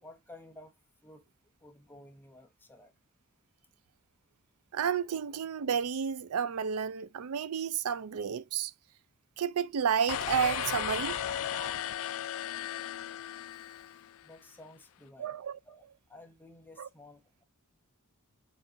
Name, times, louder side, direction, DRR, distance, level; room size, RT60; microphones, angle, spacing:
voice 1, 0.0-0.7 1.0-1.2 1.6-2.9 14.2-15.4 15.6-17.4, left 1 dB, 10° left, 1.0 m, -53 dB
voice 2, 4.7-8.7 9.4-11.8 15.2-15.6 16.8-16.9, right 7 dB, 90° right, 0.4 m, -31 dB
sound 1, 10.1-14.3, left 11 dB, 65° left, 0.3 m, -36 dB
7.3 x 2.5 x 2.6 m
head